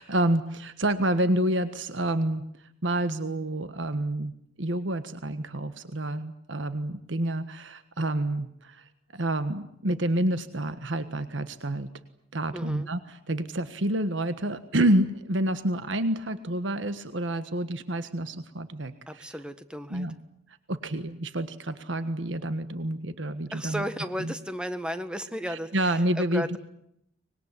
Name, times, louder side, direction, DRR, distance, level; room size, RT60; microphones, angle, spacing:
voice 1, 0.0-2.4 2.8-4.3 4.6-8.8 9.1-11.9 12.3-19.3 19.9-20.1 20.7-23.8 24.2-24.3 25.5-26.6, right 1 dB, 85° right, 11 dB, 1.5 m, -28 dB
voice 2, 12.5-12.9 19.1-20.1 23.5-26.6, equal, 5° right, 10 dB, 1.6 m, -34 dB
24.5 x 21.5 x 10.0 m, 0.76 s
head